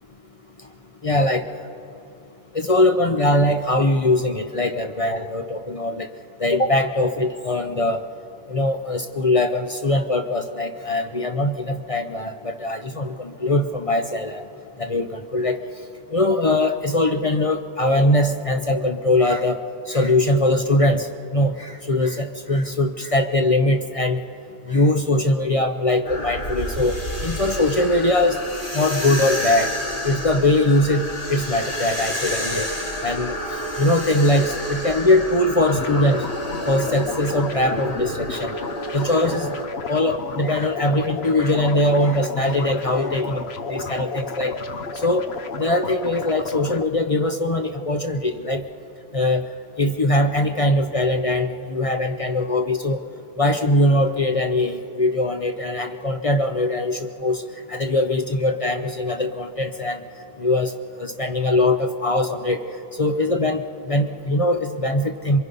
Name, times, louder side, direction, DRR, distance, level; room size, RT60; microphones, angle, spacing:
voice 1, 1.0-1.6 2.5-6.1 6.4-8.0 8.5-14.4 14.8-15.6 16.1-21.1 21.3-24.2 24.7-28.4 28.7-29.7 30.0-32.7 33.0-33.4 33.8-36.2 36.7-38.5 38.9-39.5 39.9-43.4 43.7-44.5 45.0-45.3 45.6-48.6 49.1-49.4 49.8-53.0 53.4-57.4 57.7-60.0 60.4-62.6 63.0-65.4, left 1 dB, 35° left, 6 dB, 0.8 m, -21 dB
sound 1, 26.1-39.7, equal, 50° left, 2.6 m, -30 dB
sound 2, 35.7-46.8, left 3 dB, 70° left, 1.2 m, -32 dB
27.5 x 22.5 x 5.4 m, 2.9 s
omnidirectional pair, 1.1 m